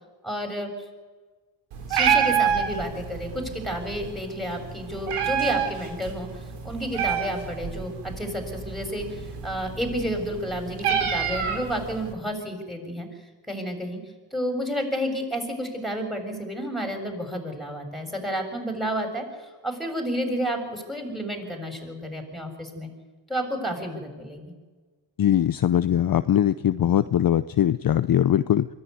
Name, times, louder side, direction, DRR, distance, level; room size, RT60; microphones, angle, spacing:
voice 1, 0.2-0.7 1.9-13.1 13.5-14.0 14.3-19.2 19.6-22.9 23.3-24.5, equal, ahead, 4 dB, 7.0 m, -31 dB
Meow, 1.7-12.1, right 7 dB, 90° right, 3.2 m, -28 dB
voice 2, 25.2-28.7, left 10 dB, 45° left, 13 dB, 0.7 m, -21 dB
23.0 x 15.0 x 9.7 m, 1.3 s
supercardioid pair, 65°, 49 cm